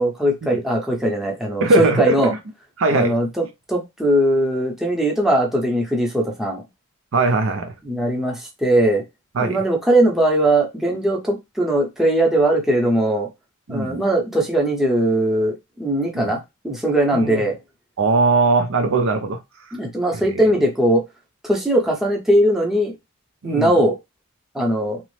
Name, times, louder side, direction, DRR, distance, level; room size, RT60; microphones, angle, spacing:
voice 1, 0.0-2.3 2.9-6.6 7.8-9.0 9.4-13.3 13.7-16.4 16.6-17.6 19.7-21.0 21.4-22.9 23.4-23.9 24.5-25.0, right 1 dB, ahead, 0.7 m, -20 dB
voice 2, 1.6-2.3 2.8-3.1 7.1-7.7 9.4-9.6 13.7-14.0 16.1-16.3 17.1-17.4 18.0-19.4 20.1-20.5 23.4-23.8, right 3 dB, 65° right, 0.5 m, -20 dB
2.9 x 2.0 x 3.1 m
head